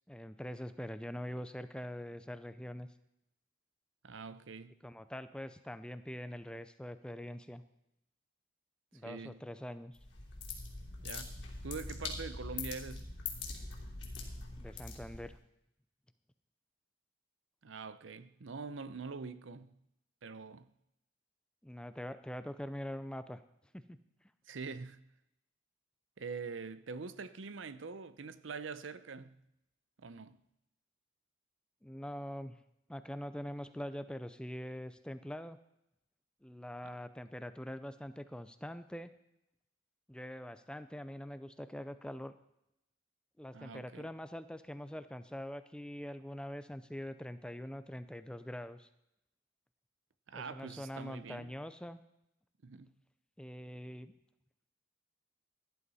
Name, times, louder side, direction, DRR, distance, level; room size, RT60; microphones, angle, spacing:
voice 1, 0.1-2.9 4.8-7.6 8.9-10.0 14.6-15.4 21.6-23.4 23.7-24.0 31.8-32.6 32.9-35.6 36.4-39.1 40.1-42.3 43.4-48.9 50.3-52.0 53.4-54.1, equal, 5° left, 0.5 m, -44 dB
voice 2, 4.0-4.7 9.0-9.4 11.0-13.1 17.6-19.7 20.2-20.7 24.5-25.0 26.2-29.3 30.0-30.4 43.5-44.1 50.3-51.5 52.6-52.9, right 4 dB, 75° right, 0.7 m, -44 dB
sound 1, 9.9-15.4, left 3 dB, 65° left, 3.0 m, -43 dB
16.5 x 11.0 x 4.2 m
head